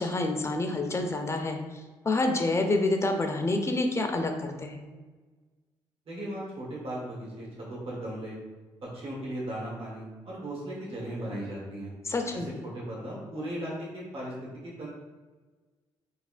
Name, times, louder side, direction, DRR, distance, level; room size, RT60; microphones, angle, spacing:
voice 1, 0.0-1.6 2.0-4.8 12.0-12.5, left 2 dB, 25° left, 4 dB, 0.6 m, -28 dB
voice 2, 6.1-8.4 8.8-11.9 12.3-14.3 14.6-14.9, right 1 dB, 65° right, -4 dB, 1.3 m, -37 dB
3.5 x 3.3 x 2.5 m, 1.3 s
supercardioid pair, 55°, 10 cm